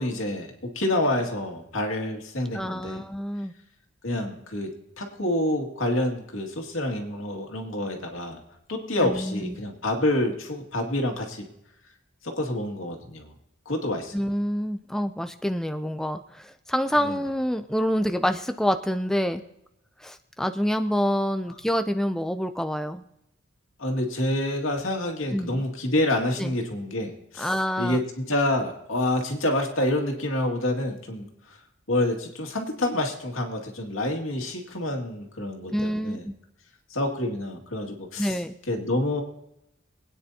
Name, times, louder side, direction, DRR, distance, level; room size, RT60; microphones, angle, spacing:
voice 1, 0.0-3.0 4.0-8.4 8.7-11.5 12.2-13.3 13.7-14.1 17.0-17.2 23.8-31.6 31.9-36.2 36.9-38.4 38.7-39.2, left 1 dB, 80° left, 2 dB, 2.2 m, -28 dB
voice 2, 2.5-3.5 9.0-9.6 14.1-19.4 20.0-23.0 25.3-25.6 26.4-26.5 27.4-28.0 35.7-36.3 38.2-38.6, equal, 5° left, 8 dB, 0.4 m, -27 dB
24.0 x 9.4 x 2.8 m, 0.82 s
head